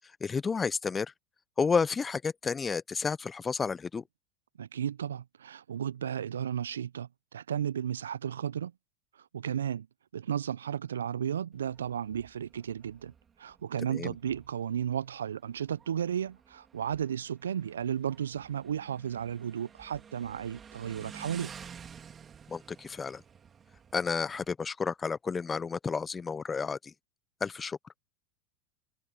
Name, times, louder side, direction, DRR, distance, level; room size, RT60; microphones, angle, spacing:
voice 1, 0.2-1.1 1.6-4.0 13.9-14.1 22.5-23.2 23.9-26.9 27.4-27.8, left 5 dB, 20° left, 1.1 m, -31 dB
voice 2, 4.6-8.7 9.3-9.9 10.1-13.1 13.4-21.5, right 9 dB, 75° right, 0.8 m, -34 dB
Motorcycle, 11.5-24.5, right 7 dB, 25° right, 4.4 m, -52 dB
figure-of-eight pair, 80°, 0 cm